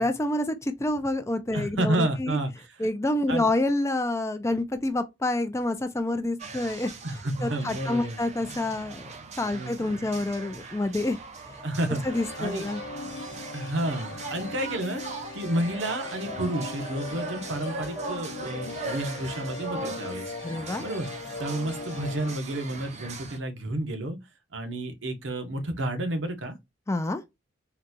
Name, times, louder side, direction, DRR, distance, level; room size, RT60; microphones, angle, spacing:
voice 1, 0.0-2.4 2.8-6.9 7.4-9.1 9.4-11.2 11.5-11.6 12.0-12.8 20.4-20.9 26.9-27.2, left 1 dB, 15° left, 0.4 m, -28 dB
voice 2, 1.5-2.5 3.3-3.5 7.0-8.2 9.5-10.0 11.6-12.0 12.4-12.7 13.5-15.0 15.3-20.3 20.8-21.1 21.4-24.2 24.5-26.6, right 1 dB, 70° right, 0.9 m, -30 dB
sound 1, 6.4-23.4, right 3 dB, 35° right, 0.7 m, -40 dB
sound 2, 12.1-22.4, left 4 dB, 80° left, 0.5 m, -39 dB
3.9 x 2.3 x 2.5 m
head